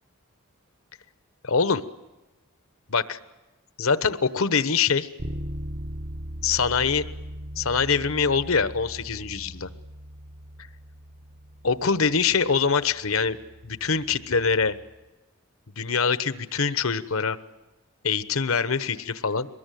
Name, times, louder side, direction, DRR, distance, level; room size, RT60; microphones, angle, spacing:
voice 1, 1.4-1.8 2.9-3.2 3.8-5.1 6.4-7.1 7.6-9.7 11.6-13.4 13.6-14.8 15.8-17.4 18.0-19.5, left 5 dB, 70° left, 13 dB, 1.1 m, -24 dB
Bass guitar, 5.2-15.0, equal, 60° right, 1.2 m, -40 dB
23.5 x 21.0 x 9.3 m, 1.1 s
head